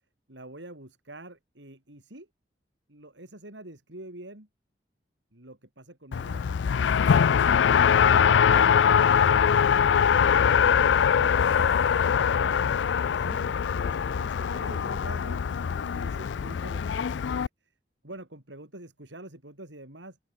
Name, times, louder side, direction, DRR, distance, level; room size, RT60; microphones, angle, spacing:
voice 1, 0.3-2.3 2.9-4.5 5.3-11.5 12.4-17.7 18.0-20.2, right 1 dB, 90° right, 5.1 m, -47 dB
Race car auto racing, 6.1-17.5, left 7 dB, 85° left, 0.4 m, -22 dB
open air
head